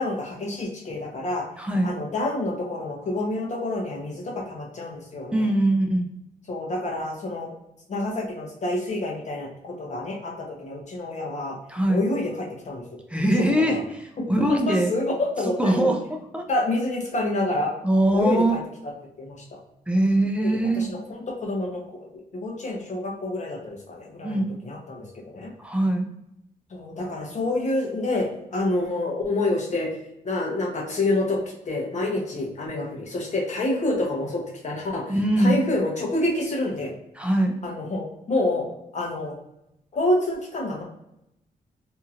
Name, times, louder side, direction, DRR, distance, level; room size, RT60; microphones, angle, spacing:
voice 1, 0.0-1.4 1.8-5.5 6.5-7.5 7.9-11.6 11.9-12.8 13.5-13.8 14.2-16.0 16.5-17.7 18.1-18.6 19.2-19.6 20.4-25.5 26.7-29.9 30.2-36.9 37.6-38.7 38.9-39.3 39.9-40.8, left 2 dB, 45° left, -2 dB, 0.9 m, -28 dB
voice 2, 1.6-2.0 5.3-6.1 11.7-12.1 13.1-14.9 15.6-16.0 16.3-16.4 17.8-18.6 19.9-20.9 24.2-24.5 25.6-26.1 35.1-35.6 37.2-37.6, right 1 dB, 5° right, 2 dB, 0.5 m, -22 dB
2.8 x 2.8 x 2.4 m, 0.82 s
wide cardioid pair, 125°, 16 cm